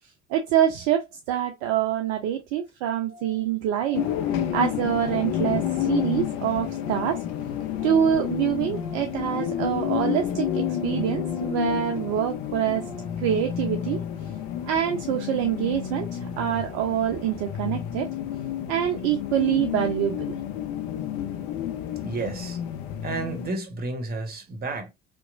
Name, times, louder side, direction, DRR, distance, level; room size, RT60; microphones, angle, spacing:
voice 1, 0.3-1.0 1.3-4.1 4.5-5.6 5.9-7.2 7.8-12.9 13.2-14.0 14.6-16.1 16.4-18.1 18.7-20.2, right 10 dB, 55° right, 0.5 m, -25 dB
Organ, 2.4-2.5 2.7-2.8 3.0-3.4 3.7-7.3 7.6-13.2, equal, 20° left, 1.2 m, -44 dB
sound 1, 3.9-23.5, left 10 dB, 45° left, 0.4 m, -30 dB
voice 2, 22.0-22.6 23.0-24.9, right 3 dB, 30° right, 0.8 m, -31 dB
2.9 x 2.1 x 2.4 m
figure-of-eight pair, 55°, 33 cm